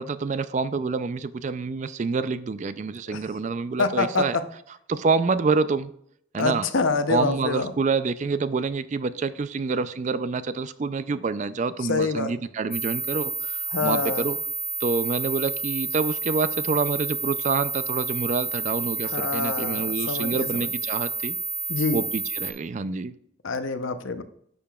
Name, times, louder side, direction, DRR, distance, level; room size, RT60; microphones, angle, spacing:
voice 1, 0.0-4.4 4.9-5.9 6.3-6.7 7.1-14.4 14.8-21.4 21.9-23.1, right 4 dB, 35° right, 14 dB, 0.3 m, -27 dB
voice 2, 3.8-4.4 6.4-7.7 11.8-12.3 13.7-14.3 19.1-20.7 21.7-22.0 23.4-24.2, left 4 dB, 75° left, 10 dB, 0.7 m, -26 dB
sound 1, 12.7-22.5, right 1 dB, 10° left, 0.6 m, -30 dB
10.5 x 6.7 x 2.3 m, 0.68 s
head